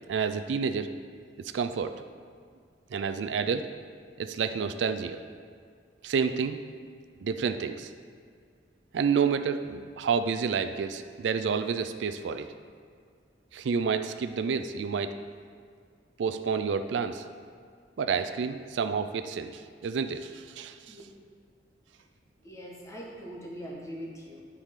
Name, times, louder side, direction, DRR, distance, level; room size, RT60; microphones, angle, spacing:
voice 1, 0.1-0.9 1.4-1.9 2.9-3.7 4.2-5.2 6.0-6.6 7.2-7.9 8.9-12.5 13.5-15.1 16.2-17.2 18.0-21.0, right 6 dB, 80° right, 9 dB, 0.4 m, -29 dB
voice 2, 22.4-24.4, equal, 15° left, -3 dB, 1.2 m, -41 dB
9.0 x 4.9 x 3.6 m, 2.1 s
head